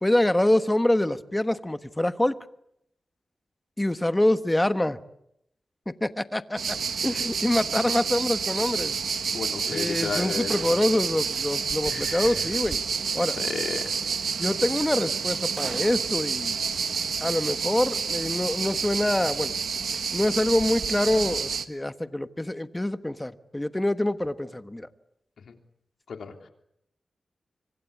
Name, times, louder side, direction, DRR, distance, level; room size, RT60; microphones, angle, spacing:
voice 1, 0.0-2.3 3.8-5.0 6.0-6.8 7.0-8.9 9.7-12.8 13.1-13.4 14.4-16.6 17.2-19.5 20.1-24.9, left 1 dB, 15° left, 11 dB, 1.3 m, -25 dB
sound 1, 6.6-21.7, right 6 dB, 85° right, 1.5 m, -29 dB
voice 2, 9.3-10.8 11.9-12.5 13.3-14.0 25.4-25.5 26.1-26.5, left 5 dB, 90° left, 5 dB, 3.2 m, -34 dB
25.5 x 24.5 x 8.5 m, 0.78 s
wide cardioid pair, 100°, 0 cm